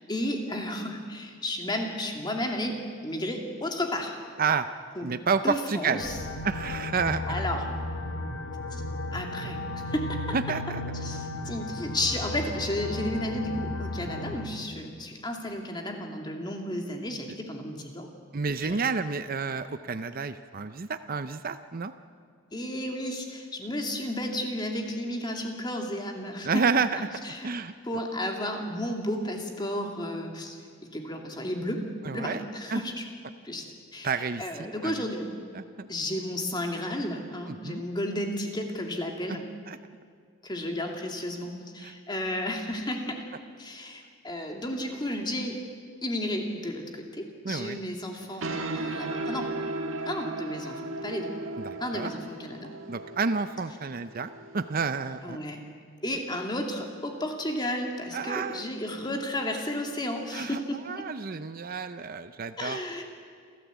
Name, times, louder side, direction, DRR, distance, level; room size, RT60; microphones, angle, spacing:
voice 1, 0.0-2.8 3.0-4.1 5.0-5.1 5.4-6.2 7.3-7.6 8.7-8.8 9.1-9.6 9.9-10.4 11.0-18.1 18.6-18.8 22.5-26.6 26.9-27.5 27.9-30.6 30.9-33.0 33.4-35.3 35.9-39.5 40.4-43.3 43.6-45.6 46.0-48.5 48.7-49.5 50.1-51.3 51.8-52.7 55.2-55.6 56.0-61.0 62.6-63.0, left 1 dB, 20° left, 2 dB, 2.5 m, -33 dB
voice 2, 5.0-6.0 6.4-7.4 10.3-10.8 18.3-21.9 26.4-27.0 27.4-27.7 32.0-32.4 32.7-32.8 34.0-35.1 35.5-35.9 37.5-37.9 39.3-39.4 39.7-39.8 41.8-41.9 47.4-47.8 51.6-52.1 52.9-55.4 58.1-58.7 60.3-62.8, right 5 dB, 45° right, 11 dB, 0.6 m, -30 dB
sound 1, 6.0-14.4, left 2 dB, 65° left, 2.2 m, -35 dB
sound 2, 48.1-55.3, right 2 dB, 75° right, 1.8 m, -36 dB
28.5 x 14.0 x 8.3 m, 2.1 s
head